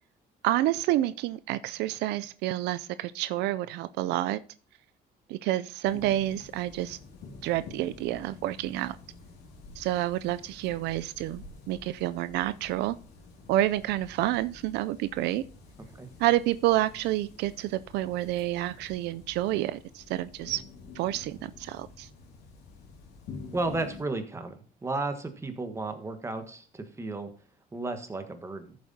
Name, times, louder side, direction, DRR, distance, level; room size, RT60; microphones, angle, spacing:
voice 1, 0.4-4.4 5.3-7.0 7.4-9.0 9.8-13.0 13.5-15.4 16.2-20.6 21.0-22.1, right 15 dB, 85° right, 14 dB, 0.4 m, -29 dB
sound 1, 5.8-24.0, left 4 dB, 85° left, 2.4 m, -49 dB
voice 2, 23.5-27.3 27.7-28.8, right 2 dB, 15° right, 7 dB, 1.3 m, -33 dB
14.0 x 7.3 x 2.8 m, 0.40 s
cardioid pair, 110°, 17 cm